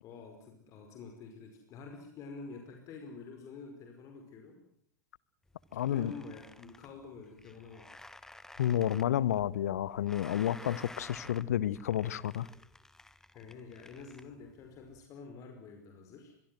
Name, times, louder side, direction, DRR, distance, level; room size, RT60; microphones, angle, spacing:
voice 1, 0.0-4.6 5.9-7.9 13.3-16.3, left 4 dB, 35° left, 4.9 m, -48 dB
sound 1, 5.5-15.0, left 2 dB, 5° left, 1.3 m, -53 dB
voice 2, 5.7-6.1 8.6-12.5, left 11 dB, 60° left, 1.0 m, -30 dB
25.0 x 22.5 x 7.8 m
figure-of-eight pair, 95°, 9 cm